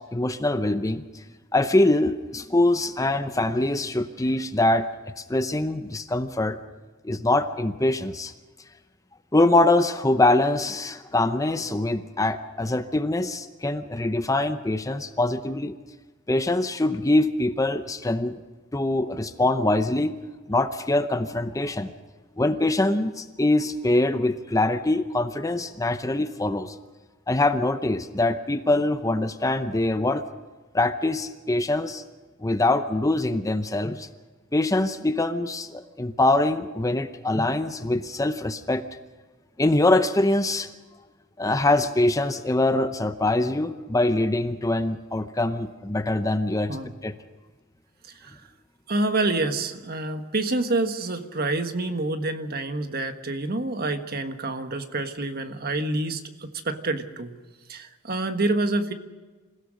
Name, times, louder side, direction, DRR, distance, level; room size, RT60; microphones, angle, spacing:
voice 1, 0.1-1.0 1.5-4.9 5.2-6.6 7.0-8.3 9.3-15.8 16.3-18.4 18.7-20.2 20.5-21.9 22.4-26.7 27.3-30.2 30.7-32.0 32.4-34.1 34.5-38.8 39.6-40.7 41.4-46.8 47.0-47.1, left 2 dB, 15° left, 10 dB, 0.7 m, -23 dB
voice 2, 48.9-57.3 57.7-58.9, right 2 dB, 50° right, 8 dB, 1.5 m, -27 dB
27.0 x 16.5 x 6.5 m, 1.3 s
head